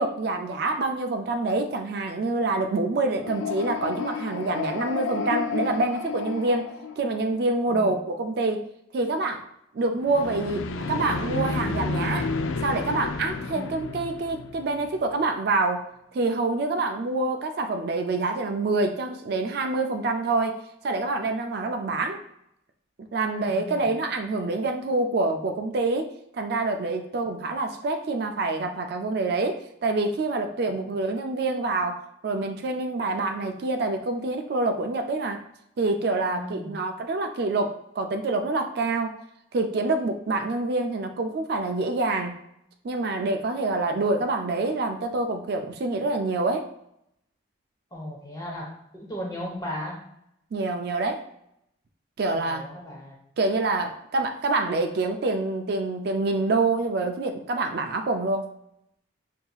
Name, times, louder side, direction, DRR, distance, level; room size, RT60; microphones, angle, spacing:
voice 1, 0.0-6.7 7.0-8.6 8.9-9.4 9.7-12.3 12.6-15.8 16.1-22.2 23.1-29.6 29.8-35.4 35.8-39.1 39.5-42.3 42.8-46.7 50.5-51.3 52.2-52.7 53.4-58.5, right 2 dB, 55° right, 4 dB, 0.3 m, -26 dB
sound 1, 3.1-7.4 10.0-15.0, left 4 dB, 85° left, 0.4 m, -31 dB
voice 2, 23.5-23.9 30.7-30.8 36.3-36.7 47.9-50.0 52.3-53.2, left 1 dB, 20° left, -2 dB, 0.9 m, -36 dB
5.5 x 2.7 x 2.3 m, 0.79 s
head